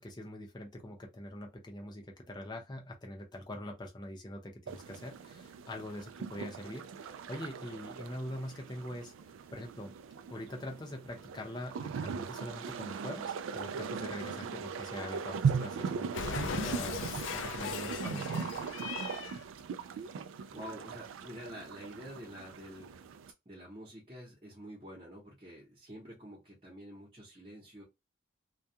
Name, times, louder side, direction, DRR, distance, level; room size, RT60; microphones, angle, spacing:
voice 1, 0.0-9.1 9.5-9.9 10.3-18.5, left 1 dB, 20° left, 0.6 m, -43 dB
sound 1, 4.7-23.3, right 6 dB, 85° right, 0.3 m, -39 dB
Cat, 16.1-19.4, left 6 dB, 80° left, 0.4 m, -39 dB
voice 2, 19.8-23.0 23.5-27.8, equal, 25° right, 0.8 m, -48 dB
2.3 x 2.2 x 2.7 m
head